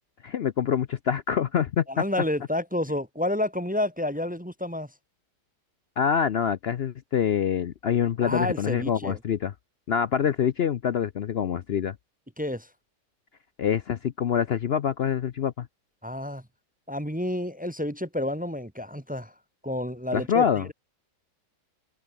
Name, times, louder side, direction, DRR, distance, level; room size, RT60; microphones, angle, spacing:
voice 1, 0.2-1.8 6.0-9.5 9.9-11.9 13.6-15.7 20.1-20.7, left 8 dB, 80° left, 0.5 m, -25 dB
voice 2, 1.9-4.9 8.2-9.2 12.4-12.7 16.0-16.4 16.9-19.3 19.6-20.7, left 1 dB, 5° right, 1.0 m, -30 dB
omnidirectional pair, 1.9 m